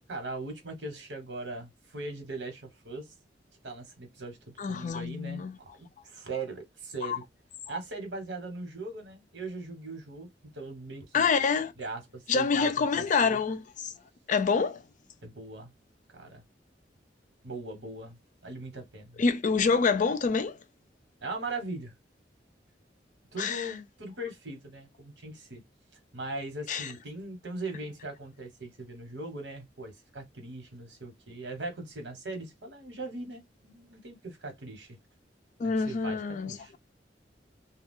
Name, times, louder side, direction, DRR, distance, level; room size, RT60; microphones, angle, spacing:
voice 1, 0.1-3.1 3.6-7.2 7.7-11.3 11.8-13.4 15.2-15.7 16.1-16.4 17.4-19.2 21.2-21.9 23.3-25.6 26.1-35.0 35.6-36.7, right 2 dB, 80° right, 1.2 m, -40 dB
voice 2, 4.6-5.6 7.0-7.2 7.7-7.8 11.1-11.7 12.3-13.9 14.3-14.8 19.2-20.6 23.4-23.7 26.7-26.9 35.6-36.6, left 5 dB, 45° left, 0.4 m, -27 dB
2.3 x 2.3 x 3.6 m
head